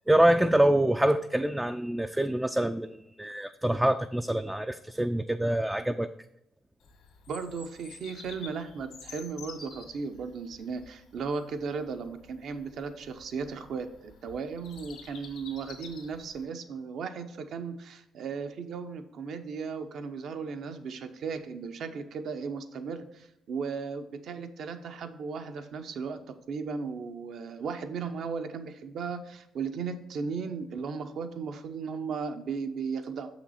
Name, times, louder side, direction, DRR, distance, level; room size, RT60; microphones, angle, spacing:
voice 1, 0.0-6.1, right 1 dB, 5° right, 7 dB, 0.3 m, -25 dB
Bird vocalization bird call bird song, 6.8-16.4, left 5 dB, 85° left, 2.0 m, -50 dB
voice 2, 7.3-33.3, right 5 dB, 70° right, 7 dB, 0.8 m, -36 dB
6.7 x 5.9 x 4.2 m, 0.86 s
cardioid pair, 90°, 0 cm